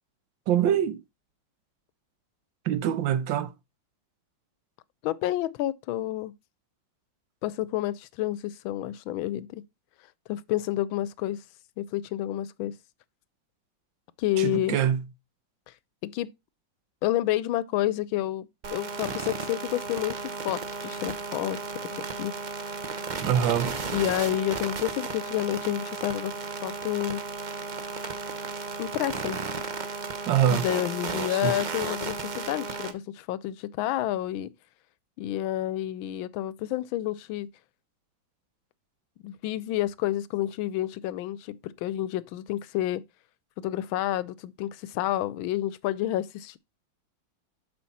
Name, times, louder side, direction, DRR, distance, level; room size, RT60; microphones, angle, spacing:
voice 1, 0.5-1.0 2.6-3.5 14.4-15.0 23.2-23.8 30.3-30.7 31.3-31.5, right 10 dB, 75° right, 1.4 m, -24 dB
voice 2, 5.0-6.3 7.4-9.6 10.3-11.4 11.8-12.7 14.2-14.8 16.0-16.3 17.0-22.3 23.9-26.3 26.6-27.2 28.8-29.4 30.5-34.5 35.2-37.5 39.2-43.0 43.6-46.6, left 13 dB, 85° left, 1.4 m, -29 dB
sound 1, 18.6-32.9, right 4 dB, 55° right, 0.5 m, -34 dB
7.8 x 6.1 x 4.1 m
omnidirectional pair, 2.1 m